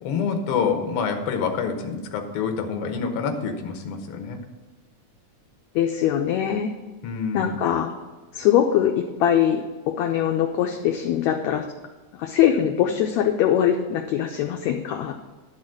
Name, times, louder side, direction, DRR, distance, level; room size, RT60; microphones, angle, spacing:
voice 1, 0.0-4.4 7.0-7.6, left 6 dB, 60° left, 5 dB, 1.6 m, -27 dB
voice 2, 5.8-6.7 7.3-7.9 8.3-11.7 12.1-15.2, left 10 dB, 75° left, 3 dB, 1.7 m, -22 dB
12.0 x 4.1 x 7.6 m, 1.3 s
omnidirectional pair, 3.7 m